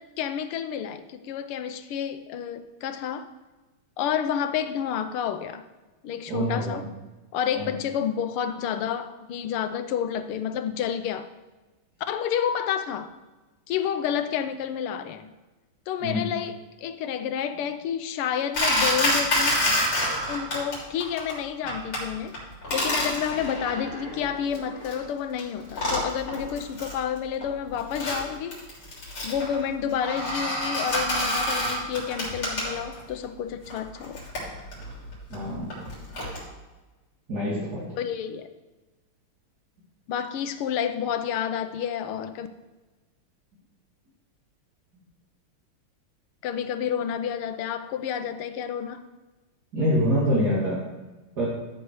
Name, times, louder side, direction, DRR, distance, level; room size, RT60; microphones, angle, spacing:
voice 1, 0.0-3.3 4.0-5.6 6.0-6.9 7.3-11.3 12.1-13.2 13.7-15.3 15.9-19.6 20.3-28.7 29.2-34.2 38.0-38.5 40.1-42.5 46.4-49.0, left 8 dB, 85° left, 1.6 m, -30 dB
voice 2, 6.3-6.9 7.6-7.8 16.0-16.3 35.3-35.7 37.3-37.9 49.7-50.8 51.3-51.4, equal, 45° right, 3.1 m, -25 dB
sound 1, 18.5-20.8 21.0-21.3 21.7-22.0 22.3-25.0 25.4-25.5 25.7-27.0 27.4-33.0 33.7-36.4, left 1 dB, 70° left, 4.3 m, -28 dB
13.0 x 6.4 x 4.8 m
omnidirectional pair, 2.4 m